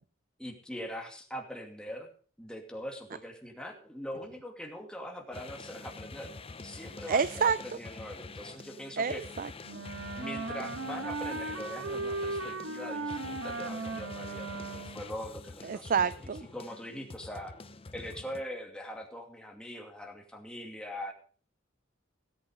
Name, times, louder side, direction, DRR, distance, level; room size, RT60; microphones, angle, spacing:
voice 1, 0.4-2.1 2.4-6.3 6.6-7.3 7.6-9.2 10.2-16.1 16.5-17.6 17.9-21.1, equal, 5° left, 2 dB, 2.4 m, -42 dB
sound 1, 5.3-18.4, left 3 dB, 30° left, 0.7 m, -46 dB
voice 2, 7.1-7.8 9.0-9.8 15.6-16.5, right 6 dB, 45° right, 15 dB, 0.5 m, -29 dB
Wind instrument woodwind instrument, 9.6-15.1, right 2 dB, 75° right, 1.4 m, -37 dB
17.0 x 8.3 x 5.3 m, 0.41 s
head